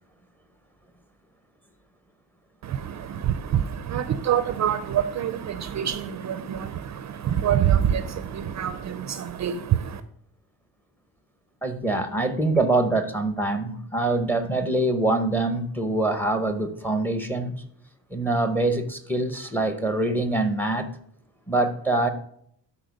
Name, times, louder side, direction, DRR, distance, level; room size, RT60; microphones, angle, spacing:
voice 1, 2.6-10.0, right 9 dB, 45° right, 12 dB, 0.5 m, -26 dB
voice 2, 11.6-17.5 18.1-20.9 21.5-22.1, right 2 dB, 5° left, 8 dB, 0.8 m, -24 dB
12.0 x 4.4 x 5.2 m, 0.67 s
cardioid pair, 170°, 41 cm